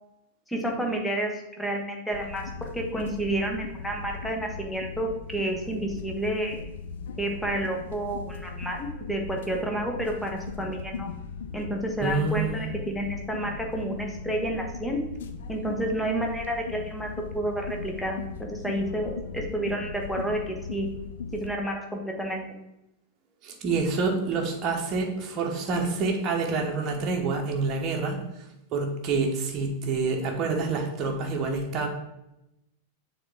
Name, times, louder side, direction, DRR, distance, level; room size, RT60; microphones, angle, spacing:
voice 1, 0.5-6.6 7.2-11.1 11.5-15.0 15.5-20.9 21.3-22.4, right 1 dB, 5° left, 1 dB, 1.1 m, -30 dB
sound 1, 2.1-21.5, left 5 dB, 60° left, 0.5 m, -38 dB
voice 2, 12.0-12.7 23.4-28.2 28.7-31.9, right 4 dB, 35° right, 1 dB, 1.1 m, -27 dB
6.8 x 3.7 x 3.6 m, 0.89 s
figure-of-eight pair, 90°, 0 cm